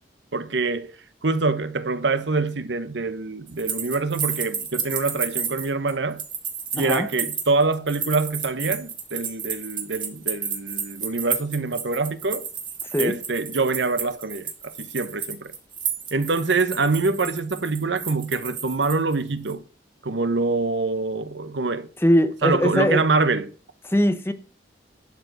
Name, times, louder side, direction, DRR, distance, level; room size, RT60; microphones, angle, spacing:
voice 1, 0.3-0.9 1.2-6.2 6.7-12.5 13.0-15.5 16.1-19.6 20.0-21.9 22.4-23.5, right 3 dB, 80° right, 1.0 m, -25 dB
sound 1, 3.5-19.1 19.5-19.6, right 7 dB, 25° right, 1.9 m, -31 dB
voice 2, 6.8-7.1 12.9-13.1 22.0-23.0 23.9-24.3, equal, 15° left, 0.9 m, -20 dB
11.5 x 5.0 x 8.0 m
head